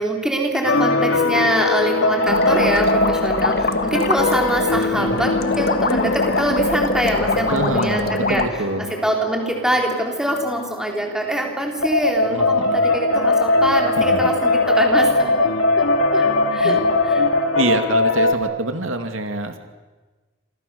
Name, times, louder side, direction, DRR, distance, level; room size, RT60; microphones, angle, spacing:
voice 1, 0.0-8.4 8.9-15.5 16.1-16.2 16.5-17.2, right 1 dB, 5° right, 1 dB, 3.8 m, -24 dB
sound 1, 0.6-18.3, left 2 dB, 80° left, 2.6 m, -21 dB
sound 2, 2.3-8.5, left 2 dB, 50° left, 1.7 m, -23 dB
voice 2, 5.0-5.3 7.5-9.0 12.3-12.8 14.0-14.3 16.6-16.8 17.5-19.6, right 2 dB, 80° right, 7 dB, 2.5 m, -26 dB
28.0 x 26.5 x 7.0 m, 1.3 s
head